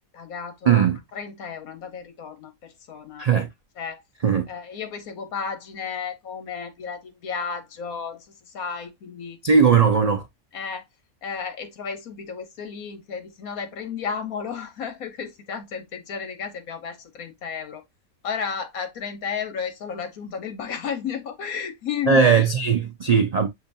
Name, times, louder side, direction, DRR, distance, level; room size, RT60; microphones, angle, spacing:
voice 1, 0.0-3.3 3.8-4.0 4.5-9.4 9.7-9.9 10.5-10.8 11.2-17.8 18.2-22.5, left 6 dB, 75° left, 1.4 m, -33 dB
voice 2, 0.7-1.0 3.2-3.5 4.2-4.5 9.4-10.2 22.1-23.5, right 6 dB, 65° right, 0.4 m, -18 dB
6.9 x 2.7 x 2.6 m
omnidirectional pair, 1.5 m